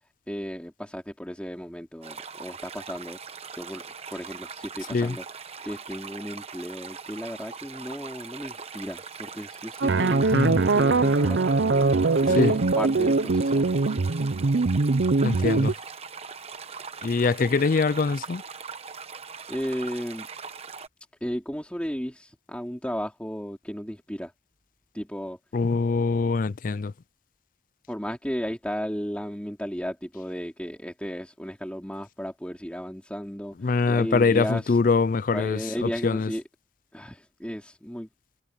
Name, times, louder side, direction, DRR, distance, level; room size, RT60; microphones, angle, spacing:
voice 1, 0.3-3.2 3.5-3.8 4.1-5.2 5.6-11.5 12.2-14.0 19.5-20.3 21.2-24.3 24.9-25.4 27.9-34.8 35.3-36.4 36.9-38.1, equal, 5° left, 3.3 m, -34 dB
sound 1, 2.0-20.9, right 5 dB, 35° right, 1.2 m, -41 dB
sound 2, 9.8-15.7, right 3 dB, 75° right, 0.7 m, -22 dB
voice 2, 15.2-15.7 17.0-18.4 25.5-26.9 33.6-36.3, left 4 dB, 45° left, 0.4 m, -23 dB
head